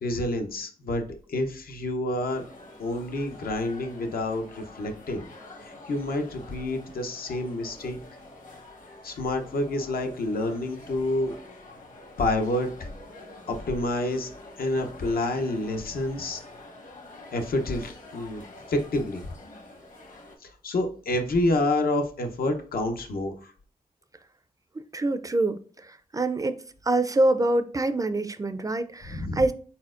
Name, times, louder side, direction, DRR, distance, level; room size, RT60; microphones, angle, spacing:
voice 1, 0.0-2.4 2.8-5.3 5.6-8.0 9.0-11.3 12.2-12.7 13.5-14.3 14.6-16.4 17.3-18.4 18.7-19.2 20.4-23.5 29.1-29.4, left 2 dB, 85° left, 5 dB, 0.7 m, -28 dB
sound 1, 2.3-20.4, left 2 dB, 60° left, 1.1 m, -47 dB
voice 2, 24.9-26.6 26.9-29.5, right 2 dB, 25° right, 11 dB, 0.3 m, -25 dB
4.3 x 4.2 x 2.5 m, 0.42 s
wide cardioid pair, 95°, 15 cm